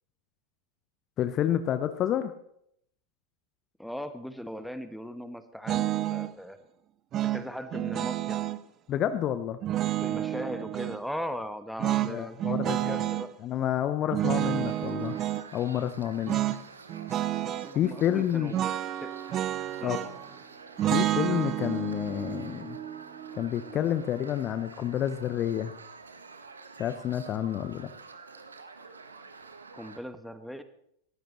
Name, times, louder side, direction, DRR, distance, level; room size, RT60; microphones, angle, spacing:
voice 1, 1.2-2.3 8.9-9.6 12.0-13.0 13.4-15.2 15.5-16.4 17.7-18.5 19.8-20.0 20.9-22.8 23.4-25.7 26.8-27.9, left 10 dB, 30° left, 11 dB, 0.8 m, -29 dB
voice 2, 3.8-6.6 7.3-8.4 10.0-13.3 17.6-19.2 19.8-20.0 29.7-30.6, equal, ahead, 11 dB, 1.2 m, -39 dB
sound 1, 5.7-6.3 7.1-8.6 9.6-11.0 11.8-13.3 14.1-15.5 16.3-16.6 16.9-17.7 18.5-20.3 20.8-23.9, right 13 dB, 30° right, 0.5 m, -30 dB
sound 2, 14.6-30.0, right 4 dB, 75° right, 1.3 m, -48 dB
20.0 x 15.5 x 3.1 m, 0.72 s
figure-of-eight pair, 90°, 0 cm